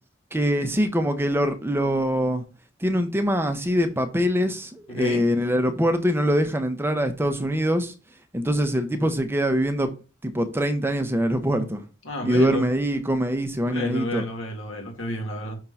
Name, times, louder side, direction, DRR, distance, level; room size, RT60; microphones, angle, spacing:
voice 1, 0.3-2.4 2.8-7.9 8.3-9.9 10.2-11.8 12.2-14.2, equal, 10° right, 0.7 m, -23 dB
voice 2, 4.9-5.2 12.0-12.7 13.7-15.6, left 1 dB, 70° left, 1.9 m, -31 dB
5.7 x 3.7 x 5.5 m
head